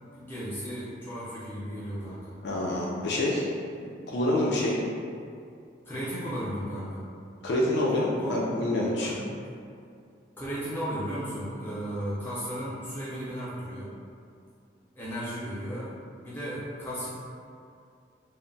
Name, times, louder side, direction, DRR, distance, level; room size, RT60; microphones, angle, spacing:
voice 1, 0.1-2.4 5.8-7.0 8.2-8.5 9.0-9.2 10.4-13.9 14.9-15.9 16.2-17.1, equal, 10° left, -10 dB, 0.7 m, -35 dB
voice 2, 2.4-3.5 3.8-4.8 7.4-9.1, left 1 dB, 65° left, -4 dB, 0.4 m, -27 dB
2.2 x 2.1 x 3.8 m, 2.4 s
head